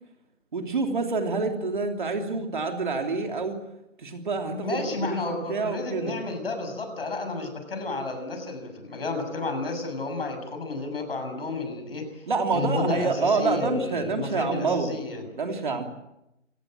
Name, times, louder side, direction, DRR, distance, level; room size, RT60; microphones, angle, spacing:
voice 1, 0.5-3.6 4.0-6.1 12.3-14.9 15.4-15.8, right 4 dB, 40° right, 4 dB, 3.2 m, -27 dB
voice 2, 4.5-12.2 12.5-15.2, left 2 dB, 50° left, 7 dB, 6.9 m, -31 dB
27.5 x 18.5 x 7.6 m, 0.87 s
hypercardioid pair, 170°, 38 cm